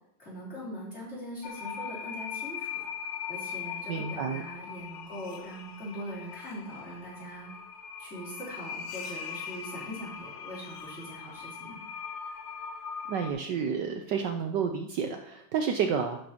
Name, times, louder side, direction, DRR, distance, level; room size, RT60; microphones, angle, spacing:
voice 1, 0.2-2.7 3.3-7.5 8.0-11.8 15.8-15.9, equal, 30° left, -6 dB, 4.4 m, -41 dB
sound 1, 1.4-13.3, left 7 dB, 85° left, 2.0 m, -40 dB
voice 2, 3.9-4.4 13.1-16.2, right 6 dB, 65° right, 6 dB, 1.3 m, -30 dB
11.5 x 5.2 x 5.8 m, 0.74 s
omnidirectional pair, 2.3 m